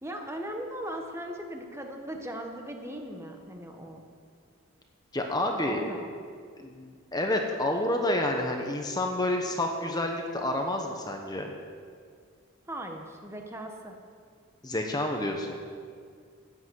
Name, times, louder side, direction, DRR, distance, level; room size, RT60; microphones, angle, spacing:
voice 1, 0.0-4.0 5.6-6.1 12.7-13.9, right 1 dB, 10° right, 3 dB, 1.1 m, -38 dB
voice 2, 5.1-5.8 6.6-11.5 14.6-15.6, left 1 dB, 20° left, 3 dB, 1.1 m, -29 dB
13.0 x 8.9 x 7.9 m, 2.1 s
head